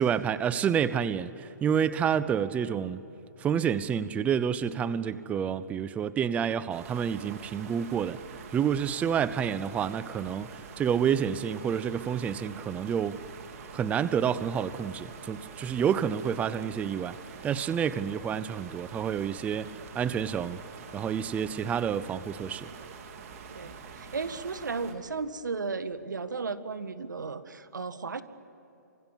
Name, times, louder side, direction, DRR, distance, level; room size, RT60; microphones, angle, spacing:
voice 1, 0.0-3.0 3.4-8.2 8.5-13.2 13.7-17.2 17.4-20.6 20.9-22.7, right 8 dB, 15° right, 0.6 m, -29 dB
sound 1, 6.7-24.9, right 6 dB, 50° right, 3.6 m, -46 dB
voice 2, 23.5-28.2, right 4 dB, 90° right, 1.6 m, -35 dB
28.5 x 25.0 x 7.2 m
hypercardioid pair, 140°, 10 cm